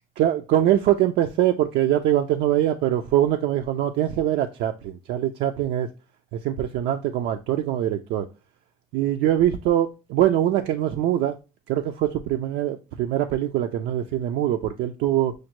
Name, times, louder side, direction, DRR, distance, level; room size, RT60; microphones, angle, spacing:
voice 1, 0.2-5.9 6.3-8.3 8.9-11.3 11.7-15.3, right 12 dB, 80° right, 0.4 m, -23 dB
6.3 x 2.1 x 2.9 m
cardioid pair, 110°, 17 cm